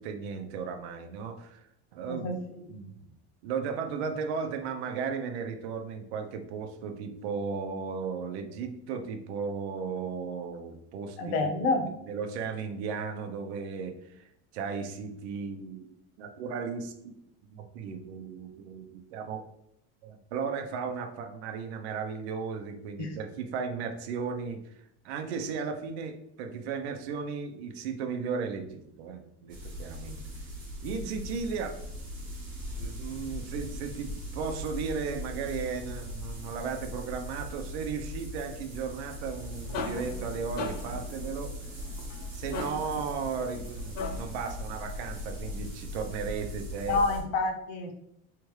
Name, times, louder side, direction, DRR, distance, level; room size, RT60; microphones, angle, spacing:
voice 1, 0.0-1.6 1.9-2.3 2.7-3.1 3.4-14.2 14.5-15.9 16.2-17.2 17.5-19.4 20.0-24.7 25.0-30.2 30.8-31.8 32.7-41.5 42.3-47.0, right 5 dB, 85° right, 5 dB, 0.8 m, -35 dB
voice 2, 11.2-11.9 23.0-23.2 46.9-47.9, left 3 dB, 50° left, 4 dB, 0.9 m, -28 dB
sound 1, 29.5-47.2, equal, 25° right, 1.5 m, -39 dB
sound 2, 39.2-44.5, left 4 dB, 30° left, 0.4 m, -40 dB
4.8 x 3.4 x 3.2 m, 0.77 s
cardioid pair, 170°, 32 cm